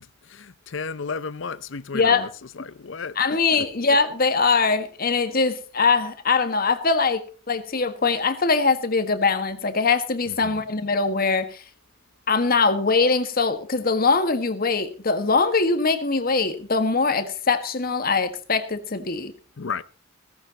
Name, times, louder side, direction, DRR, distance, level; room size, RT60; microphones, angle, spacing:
voice 1, 0.3-2.3 2.6-3.2 3.6-3.7 10.3-10.6 19.6-19.8, left 5 dB, 70° left, 0.7 m, -33 dB
voice 2, 1.9-2.3 3.1-11.6 12.3-19.3, left 4 dB, 50° left, 1.6 m, -22 dB
17.0 x 15.0 x 2.9 m
head